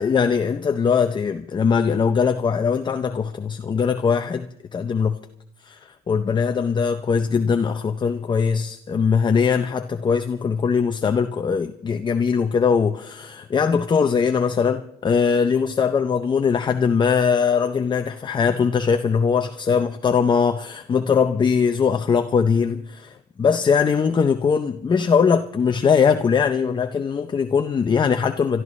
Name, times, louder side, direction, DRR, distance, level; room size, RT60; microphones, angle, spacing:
voice 1, 0.0-4.5 4.7-5.2 5.6-28.6, left 6 dB, 25° left, 0.6 m, -21 dB
28.5 x 12.5 x 3.2 m
cardioid pair, 110°, 17 cm